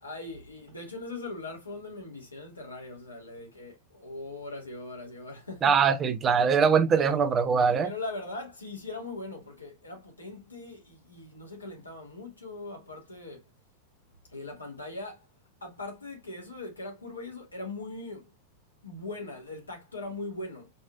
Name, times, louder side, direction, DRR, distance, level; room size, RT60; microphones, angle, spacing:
voice 1, 0.0-5.8 7.0-7.2 7.8-13.5 14.3-15.3 15.6-18.3 18.8-20.7, left 2 dB, 80° left, 1.7 m, -40 dB
voice 2, 5.6-7.9, right 6 dB, 25° right, 0.6 m, -22 dB
5.3 x 3.0 x 2.2 m
figure-of-eight pair, 90°, 0 cm